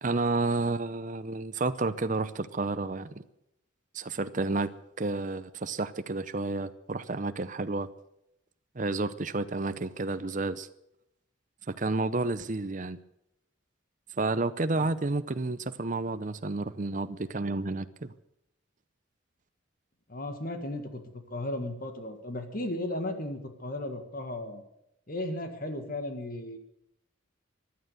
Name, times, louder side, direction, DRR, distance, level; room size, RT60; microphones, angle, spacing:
voice 1, 0.0-3.2 3.9-4.7 5.0-7.9 8.7-10.7 11.7-13.0 14.2-18.1, right 3 dB, 40° right, 12 dB, 0.7 m, -30 dB
voice 2, 20.1-24.6 25.1-26.6, left 1 dB, 45° left, 7 dB, 1.7 m, -35 dB
16.0 x 11.5 x 8.0 m, 0.81 s
head